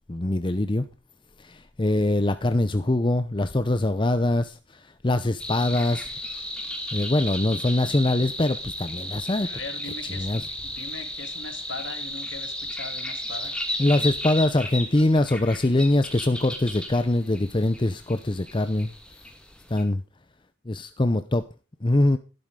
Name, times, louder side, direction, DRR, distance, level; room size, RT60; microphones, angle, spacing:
voice 1, 0.1-0.9 1.4-4.6 5.0-6.1 6.9-9.5 10.1-10.4 13.8-18.9 19.7-20.0 20.7-21.4 21.8-22.2, left 1 dB, 25° left, 0.7 m, -23 dB
sound 1, 5.4-19.8, left 1 dB, 5° left, 2.5 m, -34 dB
voice 2, 9.4-13.6, left 3 dB, 60° left, 2.9 m, -40 dB
12.5 x 12.0 x 3.8 m
head